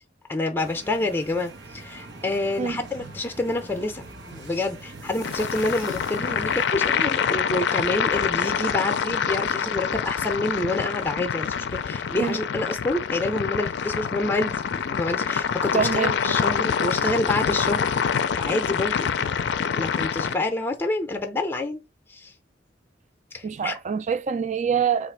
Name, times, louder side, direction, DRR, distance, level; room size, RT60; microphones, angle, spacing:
voice 1, 0.3-17.9 18.3-19.1 19.7-21.8 22.1-22.3 23.3-23.8, left 2 dB, 10° left, 0.6 m, -28 dB
sound 1, 0.6-6.6, right 2 dB, 85° right, 1.0 m, -42 dB
sound 2, 5.2-20.3, left 7 dB, 65° left, 0.4 m, -26 dB
voice 2, 15.7-16.4 23.4-25.1, right 7 dB, 40° right, 0.4 m, -25 dB
4.0 x 2.5 x 4.6 m
head